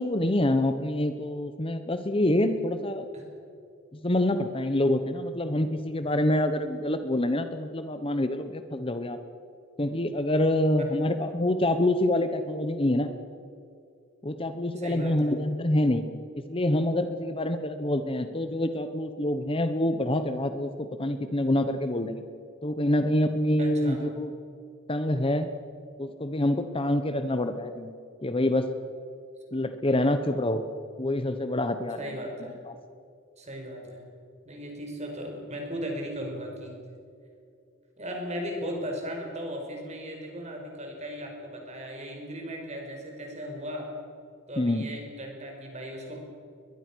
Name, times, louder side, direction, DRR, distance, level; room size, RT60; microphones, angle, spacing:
voice 1, 0.0-3.1 3.9-9.2 9.8-13.1 14.2-16.0 16.5-22.2 22.6-24.3 24.9-25.5 26.0-27.9 28.2-28.7 29.5-30.6 31.0-32.2 32.7-32.8 44.6-44.9, left 1 dB, 25° left, 9 dB, 0.9 m, -26 dB
voice 2, 14.8-15.3 23.6-24.0 32.0-32.6 33.4-34.0 34.5-36.7 38.0-43.9 44.5-46.2, equal, 35° right, 1 dB, 5.3 m, -37 dB
22.0 x 21.5 x 6.3 m, 2.4 s
head